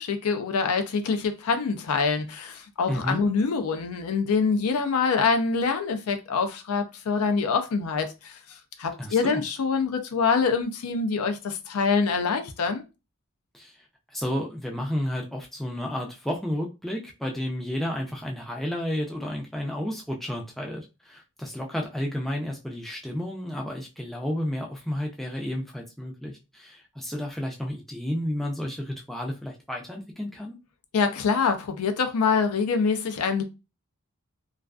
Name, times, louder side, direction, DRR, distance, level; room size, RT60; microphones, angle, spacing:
voice 1, 0.0-8.4 8.8-12.8 30.9-33.4, left 5 dB, 75° left, 0.4 m, -25 dB
voice 2, 2.9-3.2 9.0-9.4 13.5-13.7 14.1-30.6, equal, ahead, 0.4 m, -32 dB
2.4 x 2.4 x 2.3 m
head